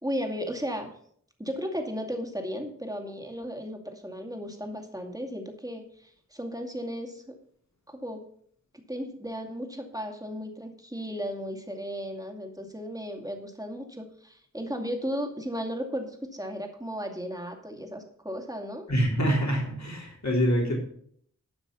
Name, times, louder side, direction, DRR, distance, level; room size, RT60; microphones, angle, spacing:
voice 1, 0.0-0.9 1.4-7.4 7.9-8.3 8.7-18.9, equal, 10° right, 3 dB, 2.3 m, -35 dB
voice 2, 18.9-20.7, equal, 60° left, -1 dB, 3.5 m, -25 dB
12.0 x 6.0 x 6.9 m, 0.62 s
wide cardioid pair, 50°, 31 cm